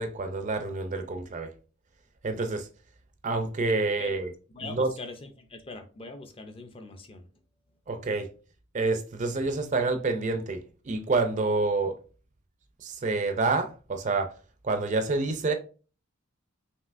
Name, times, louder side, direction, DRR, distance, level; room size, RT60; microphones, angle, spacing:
voice 1, 0.0-1.5 2.2-2.7 3.2-4.3 4.6-4.9 7.9-8.3 8.7-11.9 12.8-14.3 14.6-15.5, right 3 dB, 35° right, 0.4 m, -28 dB
voice 2, 4.5-7.2, left 3 dB, 25° left, 0.5 m, -42 dB
5.4 x 2.8 x 2.5 m
head